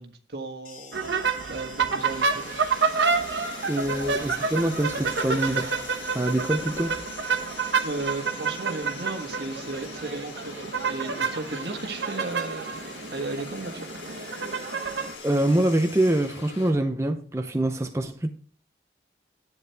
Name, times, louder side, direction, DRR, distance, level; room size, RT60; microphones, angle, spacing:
voice 1, 0.0-2.6 7.8-12.8 13.1-14.0, right 2 dB, 65° right, 1.4 m, -35 dB
sound 1, 0.6-16.6, left 6 dB, 50° left, 2.5 m, -47 dB
sound 2, 0.9-15.1, right 5 dB, 85° right, 1.0 m, -29 dB
sound 3, 2.0-16.7, left 3 dB, 85° left, 2.0 m, -44 dB
voice 2, 3.7-5.8 6.1-6.9 15.2-18.3, right 1 dB, 15° right, 0.6 m, -25 dB
11.0 x 9.1 x 3.4 m
head